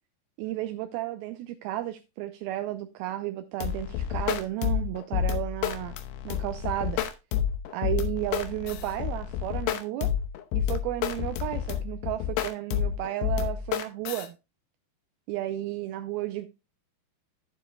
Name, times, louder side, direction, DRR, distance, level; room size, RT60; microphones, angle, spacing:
voice 1, 0.4-6.0 6.3-7.0 7.7-10.1 10.6-14.3 15.3-16.5, right 14 dB, 85° right, 2.1 m, -33 dB
sound 1, 3.6-14.3, left 9 dB, 80° left, 2.9 m, -29 dB
10.5 x 9.4 x 2.2 m
omnidirectional pair, 5.0 m